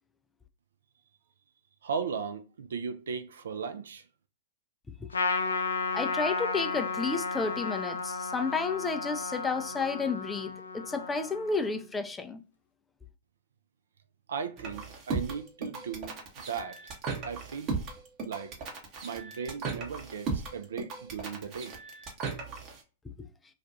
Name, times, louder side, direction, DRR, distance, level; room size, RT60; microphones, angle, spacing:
voice 1, 1.8-4.0 14.3-16.8 17.3-17.7 18.3-18.5 19.0-21.8, right 6 dB, 65° right, 0.3 m, -37 dB
Trumpet, 5.1-11.8, left 4 dB, 80° left, 0.4 m, -33 dB
voice 2, 5.9-12.4, left 4 dB, 10° left, 0.3 m, -31 dB
sound 1, 14.6-22.8, right 4 dB, 35° right, 0.7 m, -37 dB
2.4 x 2.2 x 2.6 m
figure-of-eight pair, 100°, 0 cm